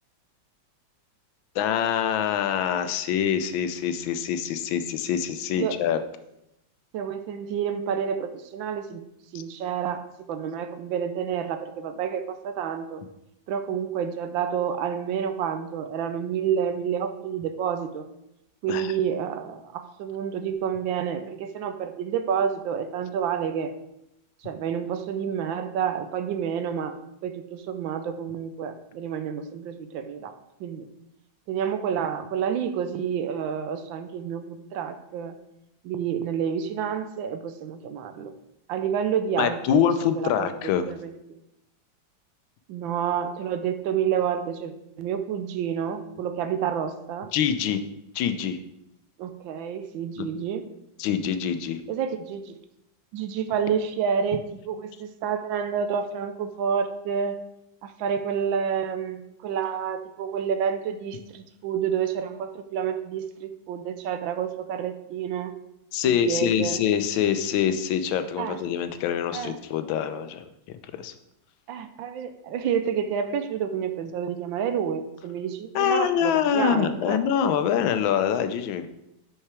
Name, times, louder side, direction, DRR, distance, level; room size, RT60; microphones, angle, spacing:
voice 1, 1.5-6.0 18.7-18.9 39.4-40.9 47.3-47.8 48.1-48.6 50.2-50.3 51.0-51.8 65.9-70.4 71.0-71.1 75.7-78.9, left 9 dB, 85° left, 10 dB, 1.4 m, -25 dB
voice 2, 6.9-9.0 9.3-13.0 13.5-18.1 18.6-23.7 24.4-30.3 30.6-30.9 31.5-35.4 35.8-38.3 38.7-41.4 42.7-47.3 49.2-50.6 51.9-52.6 53.1-57.4 57.8-65.5 66.0-66.8 68.4-68.6 69.3-69.6 71.7-77.5, right 8 dB, 80° right, 9 dB, 1.4 m, -29 dB
5.7 x 5.6 x 4.8 m, 0.85 s
omnidirectional pair, 2.1 m